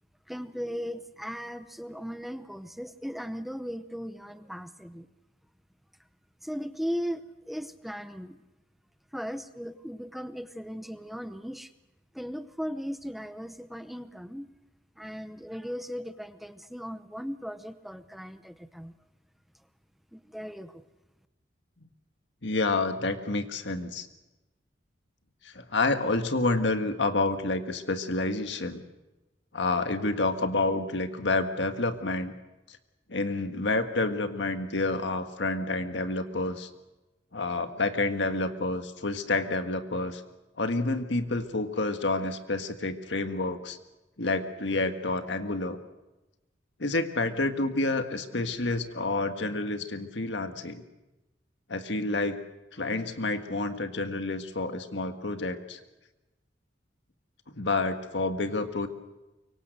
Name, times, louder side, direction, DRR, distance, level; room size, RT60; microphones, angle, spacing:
voice 1, 0.3-5.1 6.4-8.4 9.1-11.7 12.1-14.5 15.0-18.9 20.1-20.9, equal, ahead, 11 dB, 0.7 m, -37 dB
voice 2, 22.4-24.1 25.4-28.8 29.5-32.3 32.7-32.8 33.1-36.7 37.3-40.2 40.6-43.8 44.2-45.8 46.8-50.8 51.7-52.4 52.7-55.8 57.5-58.9, left 2 dB, 75° left, 7 dB, 1.7 m, -29 dB
24.5 x 23.5 x 6.6 m, 1.0 s
head